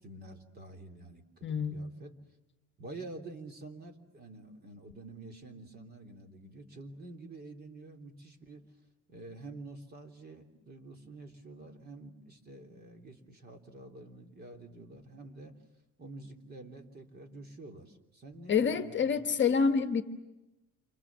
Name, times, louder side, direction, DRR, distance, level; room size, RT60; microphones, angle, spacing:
voice 1, 0.0-2.1 2.8-8.7 9.1-15.6 16.0-19.2, right 2 dB, 30° right, 4 dB, 3.2 m, -48 dB
voice 2, 1.4-1.8 18.5-20.0, left 6 dB, 35° left, 8 dB, 1.3 m, -27 dB
28.5 x 26.0 x 7.4 m, 1.0 s
cardioid pair, 140°, 32 cm